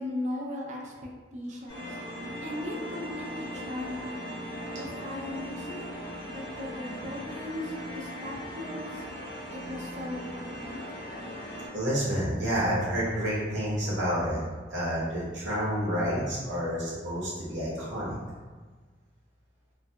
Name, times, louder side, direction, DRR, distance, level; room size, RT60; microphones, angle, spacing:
voice 1, 0.0-2.0 2.4-4.3 4.7-5.9 6.3-9.0 9.5-10.9, left 1 dB, 40° right, -1 dB, 0.5 m, -38 dB
sound 1, 1.7-11.7, equal, 85° left, 0.8 m, -39 dB
voice 2, 11.7-14.4 14.7-18.2, equal, 75° right, -8 dB, 0.9 m, -29 dB
2.6 x 2.3 x 2.2 m, 1.4 s
head